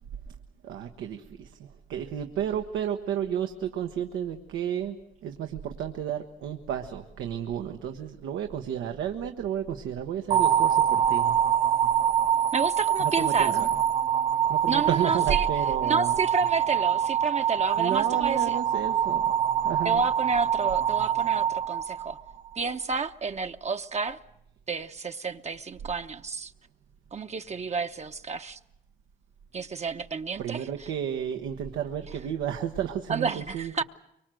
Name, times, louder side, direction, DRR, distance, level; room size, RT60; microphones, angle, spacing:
voice 1, 0.6-5.0 5.2-11.4 13.0-13.7 14.5-16.2 17.8-19.3 19.6-20.1 30.4-33.8, right 9 dB, 90° right, 1.2 m, -32 dB
sound 1, 10.3-22.5, right 9 dB, 50° right, 1.5 m, -25 dB
voice 2, 12.5-13.7 14.7-15.5 15.8-18.6 19.8-22.2 22.6-24.2 24.7-26.5 27.1-28.6 29.5-30.9 33.1-33.8, right 4 dB, 35° right, 0.9 m, -30 dB
24.0 x 24.0 x 7.7 m
cardioid pair, 90°, 20 cm